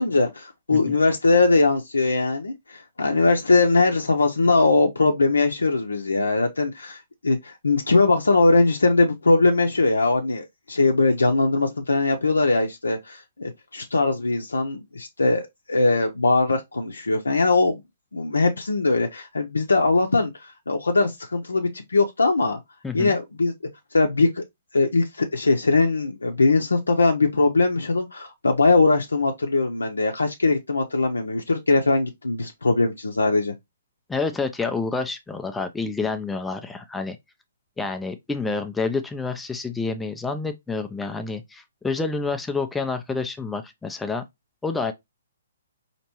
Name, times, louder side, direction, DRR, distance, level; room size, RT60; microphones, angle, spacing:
voice 1, 0.0-17.8 18.1-22.6 22.9-23.5 23.9-24.4 24.7-33.5, left 3 dB, 85° left, 0.6 m, -21 dB
voice 2, 22.8-23.1 34.1-37.2 37.8-44.2 44.6-44.9, left 4 dB, 5° left, 0.4 m, -28 dB
4.2 x 2.9 x 2.9 m
figure-of-eight pair, 130°, 0 cm